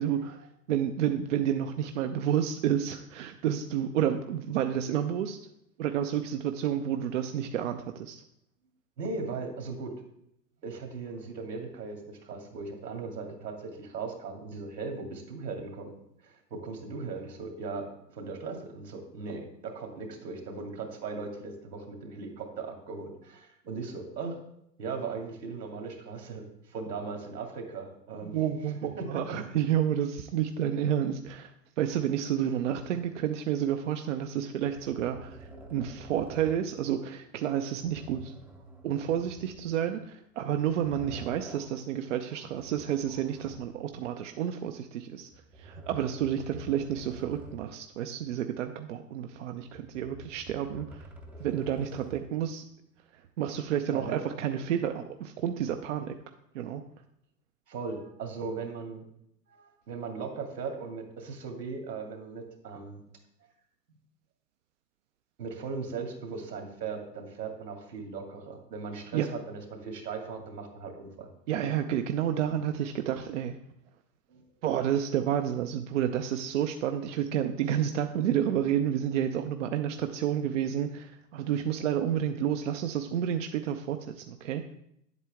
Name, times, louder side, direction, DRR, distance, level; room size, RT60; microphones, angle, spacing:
voice 1, 0.0-5.4 5.8-8.2 28.2-38.3 38.8-45.3 45.6-51.1 51.4-52.6 53.1-56.2 56.5-56.8 69.1-69.3 71.5-73.6 74.6-84.6, right 10 dB, 50° right, 6 dB, 0.6 m, -30 dB
voice 2, 9.0-9.9 10.6-15.9 16.2-17.9 18.1-24.4 24.8-28.4 28.8-29.3 53.9-54.2 57.7-59.0 59.5-63.0 65.4-71.3 74.3-74.5, right 4 dB, 70° right, 3 dB, 2.4 m, -38 dB
sound 1, 34.6-36.7 37.7-39.9 40.5-41.8 42.5-44.0 45.3-47.8 48.2-48.3 49.6-52.4, right 2 dB, 5° right, 0.6 m, -49 dB
10.0 x 8.0 x 3.5 m, 0.75 s
figure-of-eight pair, 105°, 49 cm